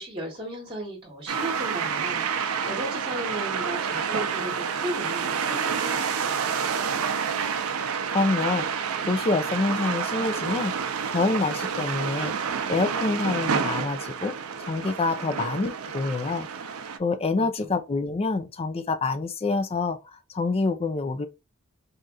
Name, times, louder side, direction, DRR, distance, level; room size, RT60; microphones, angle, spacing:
voice 1, 0.0-6.3 15.2-15.4 17.4-17.7, right 1 dB, 25° right, 1.2 m, -36 dB
sound 1, 1.3-17.0, right 6 dB, 75° right, 0.4 m, -29 dB
voice 2, 8.1-10.8 11.1-12.3 12.7-14.3 14.6-21.3, left 3 dB, 25° left, 0.4 m, -27 dB
4.2 x 2.4 x 2.2 m
head